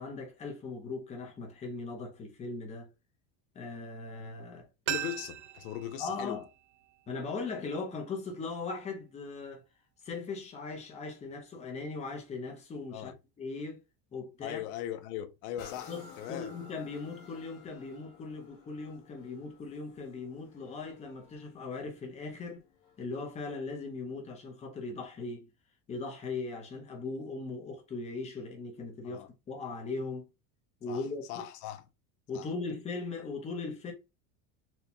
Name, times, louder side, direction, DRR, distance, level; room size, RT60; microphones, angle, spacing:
voice 1, 0.0-2.9 3.5-4.7 6.0-6.4 7.1-9.6 10.0-13.8 14.1-14.6 15.9-22.6 23.0-25.5 25.9-30.3 30.8-31.2 32.3-33.9, left 3 dB, 15° left, 0.6 m, -39 dB
voice 2, 4.9-6.4 12.9-13.2 14.4-16.5 29.0-29.3 30.9-31.9 32.3-32.5, left 11 dB, 85° left, 0.7 m, -39 dB
sound 1, 4.9-7.7 7.9-8.0, right 12 dB, 60° right, 0.5 m, -40 dB
sound 2, 15.6-23.2 23.8-23.9, left 5 dB, 70° left, 1.2 m, -54 dB
4.3 x 2.2 x 2.7 m
cardioid pair, 170°, 43 cm